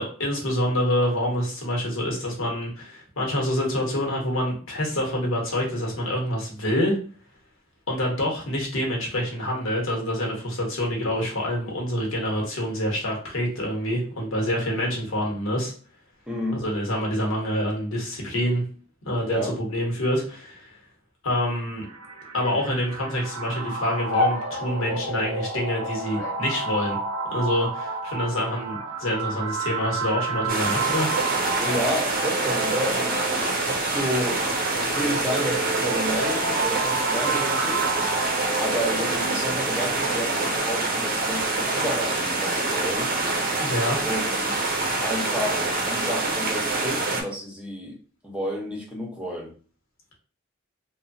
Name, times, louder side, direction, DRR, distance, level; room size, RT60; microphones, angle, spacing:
voice 1, 0.0-7.0 7.9-15.7 16.5-18.6 19.0-20.7 21.2-21.9 22.3-27.0 27.3-31.2 43.6-44.0, equal, 85° left, -1 dB, 1.0 m, -26 dB
voice 2, 16.3-16.6 19.2-19.5 31.6-33.3 33.5-34.4 34.9-37.8 38.6-43.1 44.0-44.8 45.0-47.9 48.2-49.5, equal, 5° right, -3 dB, 0.7 m, -31 dB
sound 1, 21.8-39.7, right 4 dB, 90° right, 0.7 m, -31 dB
sound 2, 24.1-25.4 26.2-27.4 28.1-28.6 29.0-29.6 30.3-31.5 32.3-32.8, left 2 dB, 65° left, 0.7 m, -34 dB
sound 3, 30.5-47.2, right 2 dB, 45° right, 0.5 m, -26 dB
3.0 x 2.2 x 2.5 m, 0.41 s
head